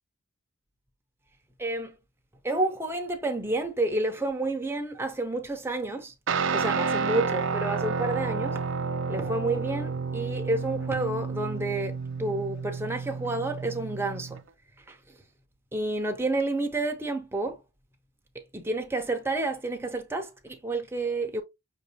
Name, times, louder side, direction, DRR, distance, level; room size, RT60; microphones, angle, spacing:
voice 1, 1.6-2.0 2.4-6.1 6.5-8.7 9.1-14.4 14.9-15.0 15.7-17.6 18.5-21.4, right 2 dB, 10° right, 0.7 m, -30 dB
Guitar, 6.3-14.4, right 5 dB, 60° right, 0.5 m, -30 dB
5.9 x 2.7 x 3.0 m
head